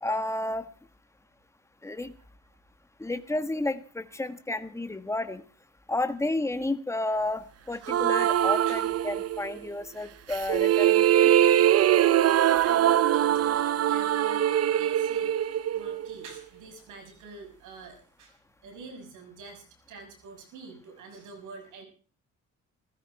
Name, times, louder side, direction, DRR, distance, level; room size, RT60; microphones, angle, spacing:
voice 1, 0.0-0.7 1.8-2.1 3.0-5.4 5.9-11.3, left 2 dB, 10° left, 9 dB, 1.5 m, -31 dB
sound 1, 7.9-9.6 10.3-16.4, right 11 dB, 55° right, 0.7 m, -23 dB
voice 2, 12.6-21.8, right 3 dB, 85° right, 4 dB, 6.5 m, -47 dB
16.0 x 15.0 x 4.9 m, 0.39 s
cardioid pair, 90°, 30 cm